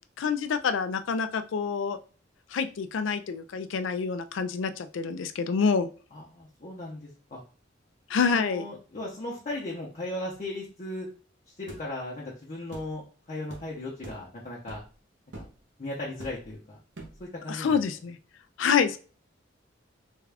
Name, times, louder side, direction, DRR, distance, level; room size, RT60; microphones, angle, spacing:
voice 1, 0.2-2.0 2.5-5.9 8.1-8.6 17.5-18.2 18.6-19.0, left 6 dB, 80° left, 9 dB, 0.4 m, -27 dB
voice 2, 6.1-7.4 8.3-11.1 11.6-14.8 15.3-15.4 15.8-16.8 17.2-17.8, left 1 dB, 40° left, -3 dB, 0.7 m, -37 dB
sound 1, 11.7-11.9 12.7-12.9 13.5-13.7 14.0-14.3 14.7-14.9 15.3-15.6 16.2-16.5 16.9-17.2, right 2 dB, 70° right, 0.9 m, -44 dB
3.5 x 2.3 x 3.3 m, 0.38 s
head